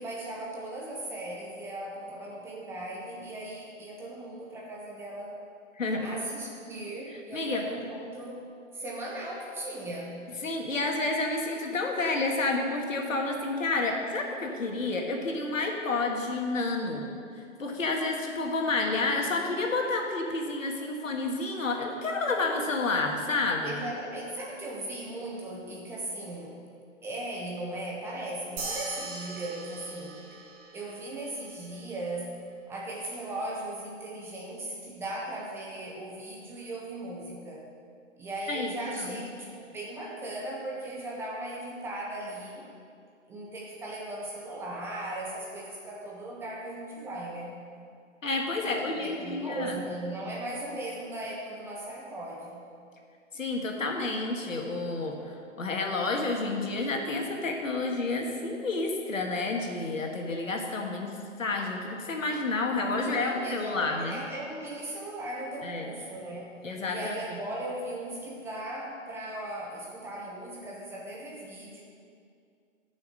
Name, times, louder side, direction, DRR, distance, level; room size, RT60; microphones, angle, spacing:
voice 1, 0.0-5.4 6.0-8.5 8.7-10.2 23.6-26.6 27.0-30.2 30.7-32.4 32.7-37.7 38.2-42.7 43.3-47.6 48.7-52.6 62.9-66.6 66.9-71.8, right 1 dB, 5° right, -3 dB, 0.5 m, -38 dB
voice 2, 5.8-6.1 7.3-7.6 10.4-17.1 17.6-23.8 38.5-38.7 39.0-39.2 48.2-49.8 53.3-64.2 65.6-65.9 66.6-67.1, left 3 dB, 85° left, 1 dB, 1.9 m, -30 dB
sound 1, 28.6-31.3, right 3 dB, 40° right, 2.1 m, -39 dB
11.0 x 6.4 x 6.5 m, 2.3 s
hypercardioid pair, 135°, 38 cm